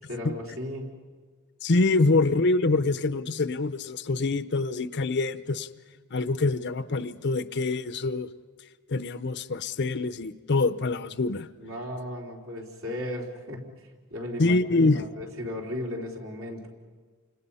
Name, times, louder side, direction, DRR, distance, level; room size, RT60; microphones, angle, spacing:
voice 1, 0.1-1.0 11.6-13.7 14.1-16.7, left 1 dB, 70° right, -1 dB, 3.9 m, -35 dB
voice 2, 1.6-5.7 6.1-8.3 8.9-11.5 14.4-15.0, left 3 dB, 55° left, 13 dB, 0.7 m, -25 dB
29.5 x 26.0 x 5.6 m, 1.5 s
head